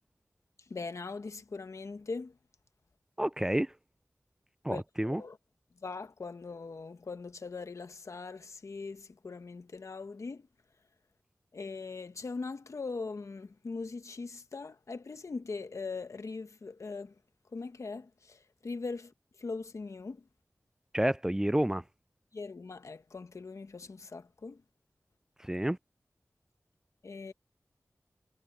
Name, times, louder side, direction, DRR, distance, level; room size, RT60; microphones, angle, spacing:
voice 1, 0.7-2.3 4.7-5.4 5.8-10.5 11.5-17.1 17.5-19.1 19.4-20.2 22.3-24.6 27.0-27.3, left 4 dB, 70° left, 1.2 m, -41 dB
voice 2, 3.2-3.7 4.6-5.2 20.9-21.8 25.4-25.8, right 1 dB, 10° right, 0.4 m, -29 dB
wide cardioid pair, 75°, 5 cm